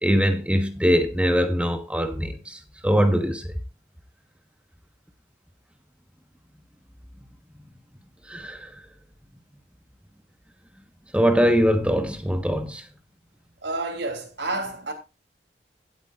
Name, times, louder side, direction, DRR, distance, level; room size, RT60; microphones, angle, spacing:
voice 1, 0.0-3.5 8.3-8.7 11.1-12.8, equal, 5° right, 1.1 m, -22 dB
voice 2, 13.6-14.9, right 2 dB, 90° right, 3.0 m, -29 dB
17.0 x 8.3 x 2.4 m
head